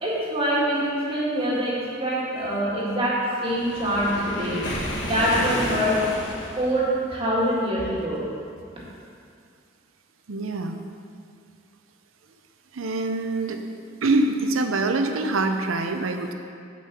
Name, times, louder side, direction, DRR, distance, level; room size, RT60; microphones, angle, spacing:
voice 1, 0.0-4.6 5.0-6.0 6.6-8.3, equal, 25° right, -6 dB, 1.9 m, -24 dB
Waves surf, 3.4-6.8, equal, 60° left, 1.4 m, -31 dB
voice 2, 10.3-10.8 12.7-13.7 14.0-16.3, right 2 dB, 85° right, 6 dB, 0.7 m, -24 dB
6.5 x 5.4 x 6.8 m, 2.3 s
head